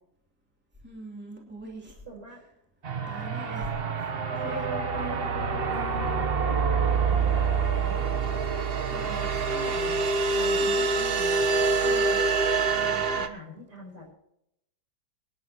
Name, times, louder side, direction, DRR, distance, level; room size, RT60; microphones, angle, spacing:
voice 1, 0.8-2.0 3.1-3.7 4.2-4.7 8.8-9.3 10.5-10.8 11.8-12.2, right 1 dB, 5° right, -1 dB, 2.9 m, -42 dB
voice 2, 2.0-2.4 4.9-5.3 5.6-8.4 8.9-12.2 12.7-14.1, equal, 60° right, 0 dB, 5.0 m, -44 dB
sound 1, 2.8-13.3, right 4 dB, 40° right, 1.0 m, -26 dB
25.0 x 10.5 x 3.0 m, 0.81 s
omnidirectional pair, 2.1 m